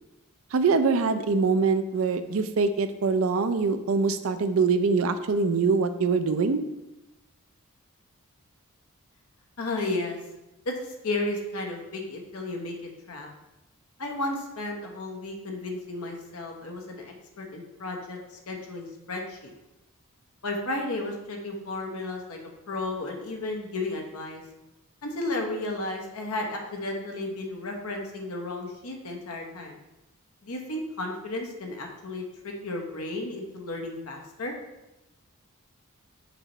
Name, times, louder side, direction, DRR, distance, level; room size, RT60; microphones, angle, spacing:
voice 1, 0.5-6.6, right 4 dB, 65° right, 10 dB, 0.4 m, -24 dB
voice 2, 9.6-10.2 10.6-13.3 14.0-18.2 18.5-19.5 20.4-22.4 22.7-24.4 25.0-29.8 30.4-34.5, left 2 dB, 80° left, 2 dB, 1.0 m, -33 dB
5.9 x 3.0 x 5.4 m, 0.97 s
head